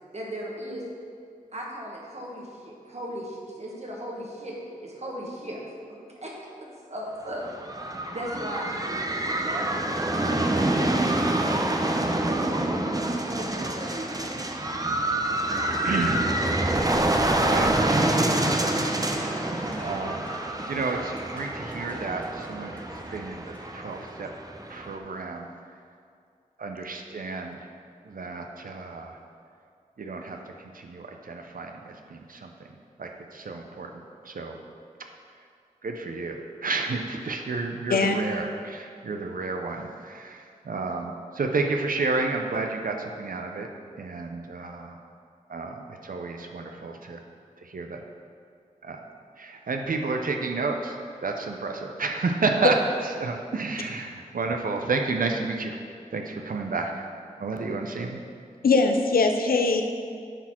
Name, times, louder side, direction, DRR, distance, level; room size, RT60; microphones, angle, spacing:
voice 1, 0.1-0.8 1.5-5.6 6.2-6.3 6.9-7.5 8.1-9.7 10.2-14.4, equal, 50° right, -3 dB, 1.6 m, -37 dB
sound 1, 7.3-25.0, right 1 dB, 25° right, 0.7 m, -27 dB
voice 2, 15.8-16.3 17.4-19.3 19.8-20.3 20.7-23.4 23.7-24.3 24.7-25.5 26.6-27.6 28.0-29.2 30.0-30.4 30.7-32.5 33.0-33.9 34.2-34.6 35.8-43.7 44.0-45.0 45.5-47.2 47.6-48.0 48.8-49.0 49.4-51.0 51.2-52.8 53.0-55.8 56.1-57.1 57.4-58.2, right 3 dB, 70° right, 3 dB, 0.6 m, -31 dB
sound 2, 19.0-24.7, equal, 10° left, 1.2 m, -44 dB
voice 3, 58.6-59.8, left 4 dB, 85° left, 5 dB, 0.6 m, -21 dB
10.0 x 4.1 x 4.4 m, 2.3 s
cardioid pair, 45°, 15 cm